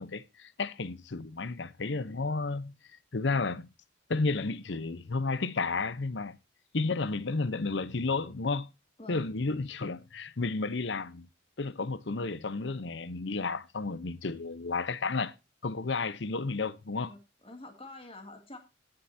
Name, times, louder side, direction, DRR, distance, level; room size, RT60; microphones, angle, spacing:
voice 1, 0.0-2.8 3.1-3.7 4.1-6.4 6.7-8.7 9.1-11.3 11.6-15.3 15.6-17.1, left 3 dB, 65° left, 0.8 m, -32 dB
voice 2, 17.0-18.6, left 2 dB, 30° left, 2.3 m, -47 dB
18.0 x 7.7 x 2.7 m
head